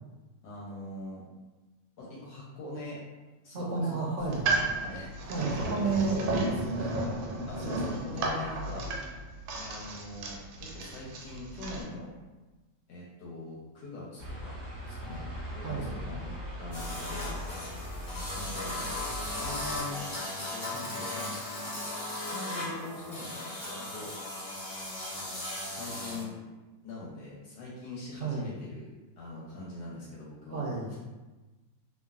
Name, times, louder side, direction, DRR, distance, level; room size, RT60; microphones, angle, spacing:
voice 1, 0.4-1.2 2.0-3.0 3.4-4.0 4.8-5.4 5.7-6.2 6.8-7.0 7.5-8.9 9.6-12.1 12.9-14.5 14.8-15.2 15.5-17.3 18.4-18.9 19.4-20.1 20.5-21.3 22.3-24.1 25.7-26.4 26.8-30.6, left 2 dB, 70° left, -5 dB, 1.0 m, -42 dB
voice 2, 3.5-4.5 5.3-7.0 15.6-15.9 28.2-28.5 30.5-30.9, right 4 dB, 75° right, -3 dB, 1.1 m, -31 dB
sound 1, 4.2-11.8, right 2 dB, 90° right, 1.3 m, -33 dB
sound 2, 14.2-19.8, equal, 50° right, 0.6 m, -40 dB
sound 3, 16.7-26.2, left 1 dB, 30° left, 0.8 m, -37 dB
3.1 x 2.3 x 2.3 m, 1.2 s
omnidirectional pair, 2.0 m